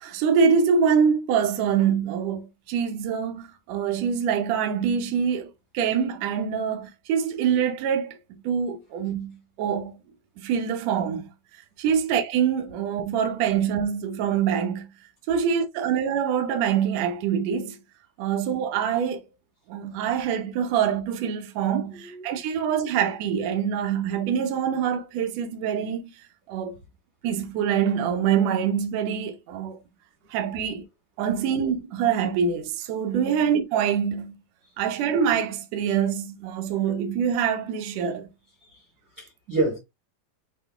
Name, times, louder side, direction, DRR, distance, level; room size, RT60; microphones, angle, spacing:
voice 1, 0.0-8.2 8.4-10.0 10.4-11.3 11.8-14.9 15.3-17.8 18.2-19.2 19.7-26.1 26.5-26.8 27.2-29.8 30.3-30.8 31.2-34.4 34.8-38.3, right 7 dB, 85° right, 1.5 m, -25 dB
voice 2, 21.9-22.4 38.7-38.8 39.2-39.8, right 2 dB, 65° right, 0.9 m, -28 dB
6.5 x 2.2 x 3.4 m
omnidirectional pair, 4.2 m